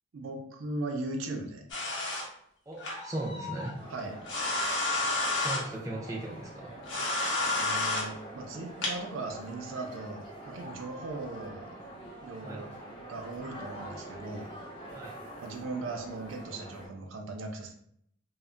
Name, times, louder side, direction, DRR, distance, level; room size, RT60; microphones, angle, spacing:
voice 1, 0.1-1.6 3.9-4.2 7.5-11.7 12.2-14.5 15.4-17.8, right 2 dB, 75° right, 3 dB, 0.4 m, -38 dB
sound 1, 1.7-2.2 2.8-3.7 4.2-5.6 6.8-8.0 8.8-8.9, left 2 dB, 70° left, 0.8 m, -30 dB
voice 2, 2.7-3.8 5.4-6.7 12.4-12.6 14.9-15.2, right 1 dB, 15° right, -2 dB, 0.4 m, -37 dB
sound 2, 3.8-16.9, right 1 dB, 25° left, 0.8 m, -45 dB
2.1 x 2.1 x 3.6 m, 0.68 s
head